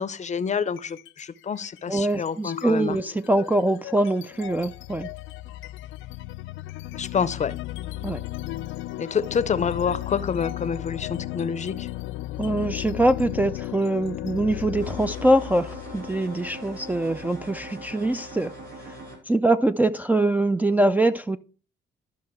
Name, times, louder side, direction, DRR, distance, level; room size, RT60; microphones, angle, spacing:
voice 1, 0.0-3.0 6.9-7.5 9.0-11.9, left 6 dB, 35° left, 0.6 m, -27 dB
sound 1, 0.7-1.2 1.6-18.2, left 15 dB, 80° left, 0.4 m, -36 dB
voice 2, 1.9-5.1 8.0-8.2 12.4-18.5 18.9-19.0 19.3-21.4, right 1 dB, 10° right, 0.3 m, -23 dB
sound 2, 14.8-19.2, right 1 dB, 75° right, 3.3 m, -41 dB
12.5 x 5.6 x 3.0 m
cardioid pair, 90°, 20 cm